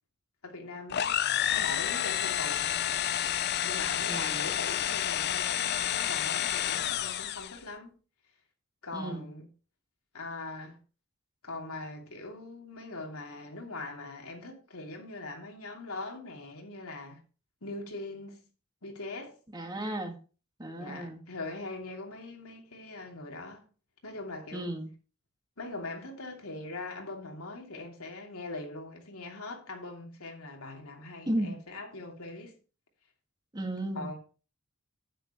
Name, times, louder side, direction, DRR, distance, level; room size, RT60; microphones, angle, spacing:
voice 1, 0.4-1.2 1.5-2.8 3.6-7.9 8.8-9.5 10.1-10.8 11.4-17.2 17.6-18.4 18.8-19.3 20.8-23.7 24.0-24.7 25.6-32.6 34.0-34.2, left 2 dB, 85° left, 2.8 m, -41 dB
sound 1, 0.9-7.6, left 10 dB, 50° left, 0.5 m, -30 dB
voice 2, 4.1-4.5 8.9-9.3 19.5-20.2 20.6-21.2 24.5-24.9 31.3-31.6 33.5-34.1, right 1 dB, 20° right, 1.8 m, -34 dB
10.0 x 9.2 x 3.1 m
head